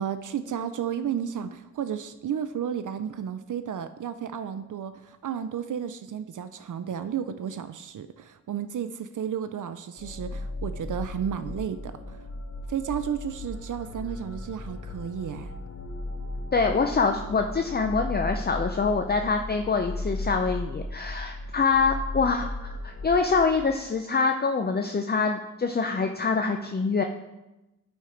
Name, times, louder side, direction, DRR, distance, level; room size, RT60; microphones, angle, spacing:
voice 1, 0.0-12.3 12.7-15.5, right 8 dB, 80° right, 11 dB, 0.5 m, -33 dB
sound 1, 10.0-23.7, left 1 dB, 55° left, 1.0 m, -36 dB
voice 2, 16.5-27.0, left 4 dB, 30° left, 5 dB, 0.5 m, -25 dB
10.0 x 4.4 x 5.0 m, 0.98 s
wide cardioid pair, 70°, 30 cm